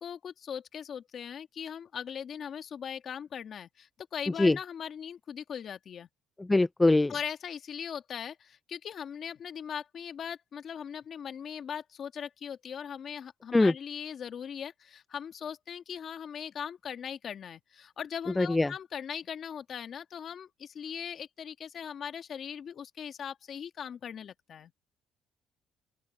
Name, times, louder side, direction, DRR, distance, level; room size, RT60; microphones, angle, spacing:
voice 1, 0.0-6.1 7.1-24.7, left 8 dB, 55° left, 2.0 m, -40 dB
voice 2, 6.5-7.1 13.5-13.7 18.4-18.7, left 2 dB, 15° left, 0.3 m, -22 dB
open air
cardioid pair, 90°, 0 cm